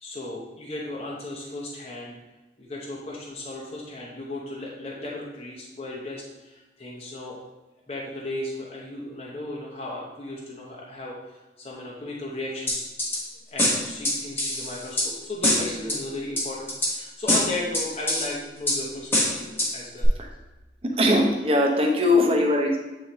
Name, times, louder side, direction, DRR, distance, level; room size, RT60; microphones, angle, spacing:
voice 1, 0.0-2.2 2.6-7.4 7.9-12.8 13.5-20.1, left 2 dB, 35° left, -4 dB, 0.8 m, -35 dB
sound 1, 12.7-13.2 13.6-15.1 15.4-16.0 16.4-16.9 17.3-18.3 18.7-18.8 19.1-19.7 20.0-20.1, left 1 dB, 15° left, 1.1 m, -23 dB
voice 2, 21.0-22.8, left 1 dB, 35° right, 1 dB, 0.8 m, -20 dB
8.2 x 3.8 x 3.0 m, 1.1 s
head